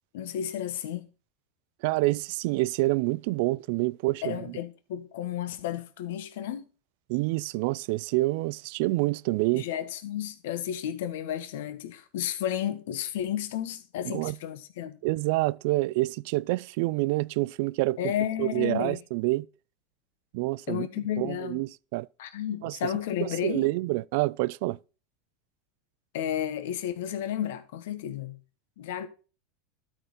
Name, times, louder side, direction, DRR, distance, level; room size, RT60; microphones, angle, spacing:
voice 1, 0.1-1.1 4.2-6.7 9.5-15.0 18.0-19.0 20.7-21.6 22.2-23.7 26.1-28.4 28.8-29.1, left 10 dB, 75° left, 1.0 m, -32 dB
voice 2, 1.8-4.6 7.1-9.7 14.0-14.4 15.0-18.0 18.4-19.5 20.3-20.9 21.2-22.1 22.6-22.8 23.2-24.8, right 21 dB, 70° right, 0.3 m, -27 dB
12.5 x 4.4 x 3.9 m
supercardioid pair, 110°, 0 cm